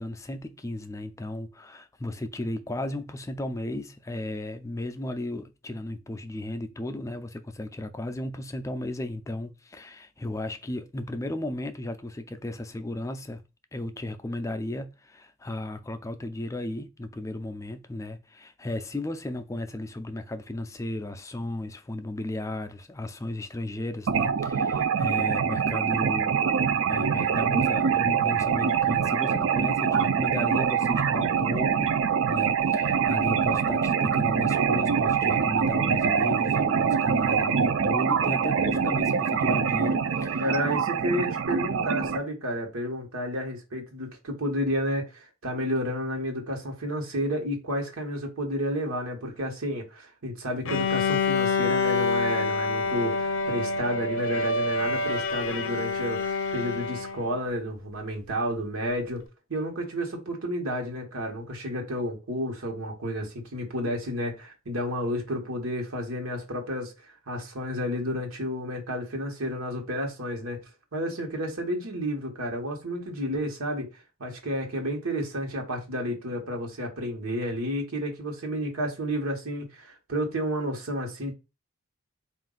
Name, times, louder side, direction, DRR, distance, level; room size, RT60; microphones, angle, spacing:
voice 1, 0.0-13.4 13.7-26.4 26.7-31.9 32.3-40.8, left 1 dB, 15° left, 0.3 m, -35 dB
sound 1, 24.1-42.2, right 6 dB, 65° right, 0.4 m, -24 dB
voice 2, 40.4-59.2 59.5-70.6 70.9-73.9 74.2-81.3, equal, 90° right, 1.1 m, -31 dB
Bowed string instrument, 50.7-57.4, left 3 dB, 70° left, 0.5 m, -27 dB
4.0 x 2.5 x 3.8 m
head